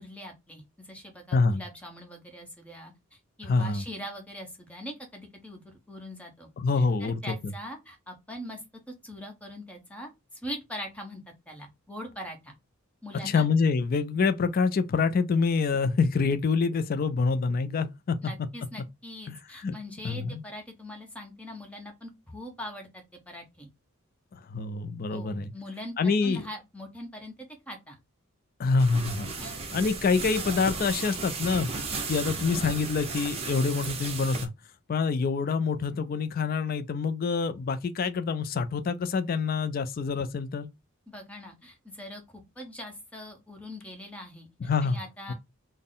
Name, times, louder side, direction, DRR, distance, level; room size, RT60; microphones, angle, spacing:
voice 1, 0.0-6.5 6.8-8.6 8.9-11.2 11.5-12.6 13.0-13.5 18.2-23.7 25.1-27.3 27.7-28.0 29.4-29.6 41.1-45.3, equal, 5° left, 0.9 m, -42 dB
voice 2, 3.5-3.8 6.6-7.5 13.2-18.3 19.3-19.8 20.0-20.4 24.3-25.5 26.0-26.5 28.6-29.3 29.7-31.7 32.1-34.5 34.9-40.7 44.6-45.0 45.3-45.4, left 4 dB, 45° left, 0.3 m, -26 dB
sound 1, 28.8-34.5, right 4 dB, 30° right, 0.7 m, -35 dB
3.7 x 2.0 x 3.8 m
head